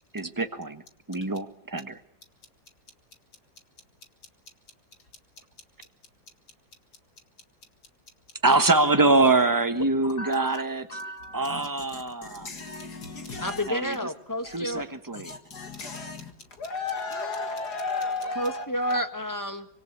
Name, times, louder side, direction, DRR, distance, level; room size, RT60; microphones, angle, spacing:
voice 1, 0.1-0.8 1.1-2.0 8.4-11.0 11.3-12.5 13.3-14.0 14.5-15.3, right 2 dB, 10° right, 1.2 m, -24 dB
voice 2, 10.9-11.4 12.4-13.6 15.3-16.2 16.6-18.6 18.9-19.0, left 3 dB, 60° left, 2.4 m, -34 dB
voice 3, 13.4-14.8 18.3-19.7, equal, 10° left, 1.5 m, -30 dB
25.5 x 24.5 x 8.4 m
omnidirectional pair, 1.9 m